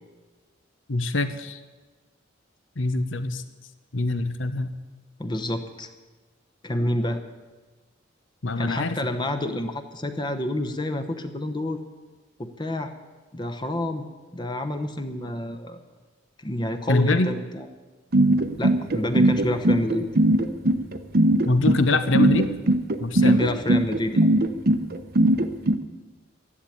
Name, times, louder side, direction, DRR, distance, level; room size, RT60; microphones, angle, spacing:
voice 1, 0.9-1.6 2.8-3.4 3.9-4.7 8.4-9.0 16.9-17.3 21.4-22.5 23.0-23.4, left 2 dB, 80° left, 10 dB, 1.0 m, -24 dB
voice 2, 5.2-5.9 6.6-7.2 8.6-11.8 12.4-12.9 13.3-15.8 16.4-17.7 18.6-20.1 23.2-24.3, left 1 dB, 25° left, 7 dB, 0.9 m, -28 dB
sound 1, 18.1-25.8, right 1 dB, 50° right, 0.9 m, -19 dB
13.0 x 11.0 x 8.7 m, 1.3 s
head